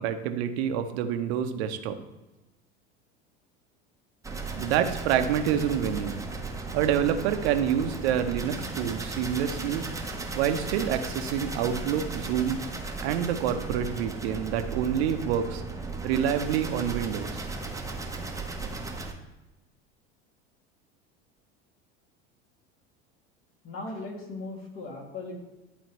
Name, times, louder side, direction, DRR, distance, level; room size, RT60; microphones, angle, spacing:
voice 1, 0.0-2.0 4.6-6.3 6.7-9.8 10.3-12.6 13.0-15.6 16.0-17.5, right 9 dB, 70° right, 8 dB, 0.8 m, -27 dB
sound 1, 4.2-19.1, right 3 dB, 10° right, 0.9 m, -36 dB
voice 2, 23.6-25.4, left 2 dB, 40° left, -1 dB, 2.3 m, -38 dB
11.5 x 4.0 x 3.1 m, 1.0 s
hypercardioid pair, 80°, 33 cm